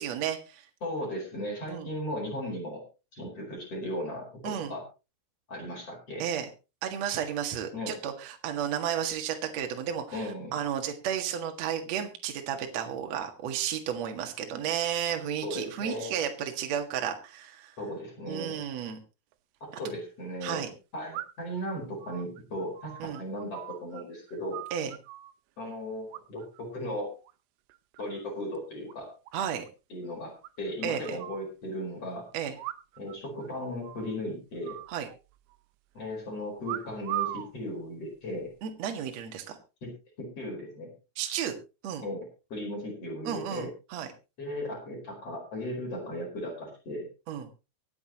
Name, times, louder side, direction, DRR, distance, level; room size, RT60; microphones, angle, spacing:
voice 1, 0.0-0.6 1.7-1.9 4.4-4.7 6.2-6.5 6.8-17.7 18.3-19.0 20.4-20.7 23.0-23.2 24.7-24.9 29.3-29.7 30.8-31.2 32.3-32.6 34.9-35.1 38.6-39.6 41.2-41.5 41.8-42.0 43.2-44.1 47.3-47.5, right 9 dB, 55° right, 4 dB, 1.9 m, -33 dB
voice 2, 0.8-2.8 3.1-4.8 5.5-6.2 7.7-8.0 10.1-10.6 15.4-16.1 17.8-18.6 19.6-20.6 20.9-24.6 25.6-27.1 28.0-29.1 29.9-32.3 33.0-34.8 35.9-38.5 39.8-39.9 40.2-40.9 42.0-42.3 42.5-43.7 44.4-47.1, left 1 dB, 30° left, 0 dB, 5.2 m, -36 dB
sound 1, 19.3-19.4 21.1-21.6 22.0-24.0 24.3-25.3 26.1-26.6 26.9-27.3 27.7-28.3 28.5-28.6 28.9-29.0 29.3-29.4 29.7-29.8 30.4-31.5 32.5-33.2 33.4-33.5 33.8-34.2 34.6-35.6 36.6-37.5 38.3-38.6, right 16 dB, 80° right, 3.0 m, -39 dB
24.0 x 8.4 x 3.0 m, 0.29 s
omnidirectional pair, 5.6 m